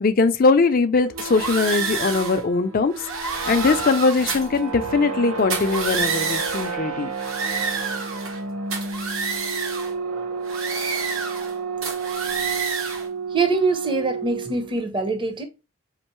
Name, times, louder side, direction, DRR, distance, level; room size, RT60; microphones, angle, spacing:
voice 1, 0.0-2.9 3.5-7.1, left 4 dB, 40° left, 0.4 m, -20 dB
sound 1, 1.1-14.8, right 4 dB, 85° right, 0.7 m, -31 dB
sound 2, 1.2-2.4 2.9-4.6 5.4-6.8 7.1-8.4 8.7-9.9 10.5-11.5 11.8-13.1, right 4 dB, 65° right, 1.0 m, -28 dB
voice 2, 13.3-15.4, right 3 dB, 20° right, 0.7 m, -23 dB
4.4 x 3.6 x 3.0 m
head